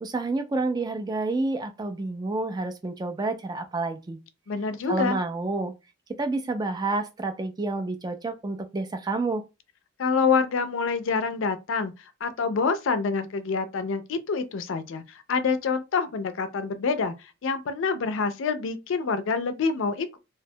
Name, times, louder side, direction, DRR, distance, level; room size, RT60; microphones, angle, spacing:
voice 1, 0.0-4.2 4.9-5.7 6.2-9.4, right 3 dB, 20° right, 0.3 m, -29 dB
voice 2, 4.5-5.2 10.0-11.9 12.2-17.1 17.4-20.2, left 5 dB, 65° left, 0.4 m, -26 dB
2.8 x 2.1 x 2.7 m
head